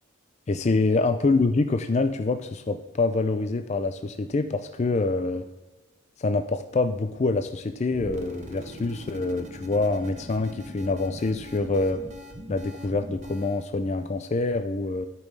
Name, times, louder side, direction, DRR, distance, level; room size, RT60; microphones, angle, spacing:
voice 1, 0.5-5.4 6.2-12.0 12.5-15.1, left 3 dB, 30° left, 8 dB, 0.3 m, -26 dB
sound 1, 7.9-13.7, equal, 30° right, 1.0 m, -41 dB
12.5 x 5.3 x 3.2 m, 1.1 s
head